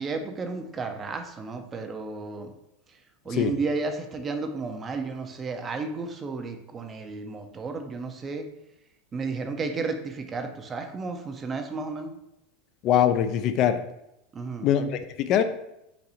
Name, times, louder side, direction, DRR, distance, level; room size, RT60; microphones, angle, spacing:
voice 1, 0.0-2.5 3.2-8.5 9.1-12.2 14.3-14.7, right 4 dB, 20° right, 6 dB, 0.6 m, -32 dB
voice 2, 12.8-13.8 14.6-15.4, left 9 dB, 45° left, 9 dB, 0.4 m, -22 dB
4.0 x 2.6 x 4.3 m, 0.84 s
supercardioid pair, 135°, 0 cm